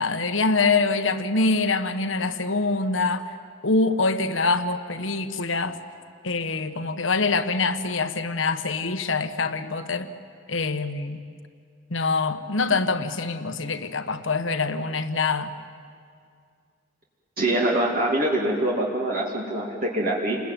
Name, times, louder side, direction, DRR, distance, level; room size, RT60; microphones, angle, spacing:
voice 1, 0.0-3.3 3.6-5.8 6.2-10.1 10.5-11.2 11.9-15.5, left 3 dB, 70° left, 9 dB, 1.4 m, -24 dB
voice 2, 17.4-20.4, right 1 dB, 45° right, -3 dB, 2.6 m, -24 dB
30.0 x 21.0 x 9.2 m, 2.2 s
head